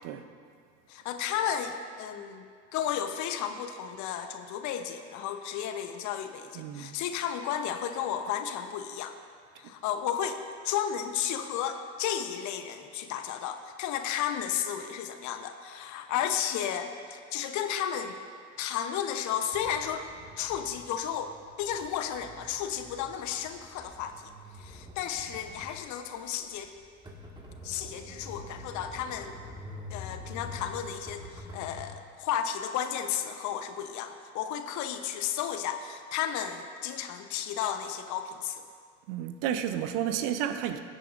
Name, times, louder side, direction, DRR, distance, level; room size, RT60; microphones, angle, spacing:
voice 1, 0.9-2.5 2.7-9.1 9.6-18.2 18.6-20.1 20.4-26.7 27.6-29.3 29.9-38.6, left 9 dB, 50° left, 8 dB, 0.9 m, -33 dB
voice 2, 6.5-7.0 39.1-40.8, right 10 dB, 60° right, 9 dB, 0.8 m, -31 dB
sound 1, 19.5-31.9, left 2 dB, 10° right, 1.7 m, -46 dB
16.5 x 9.1 x 2.5 m, 2.1 s
hypercardioid pair, 65°, 36 cm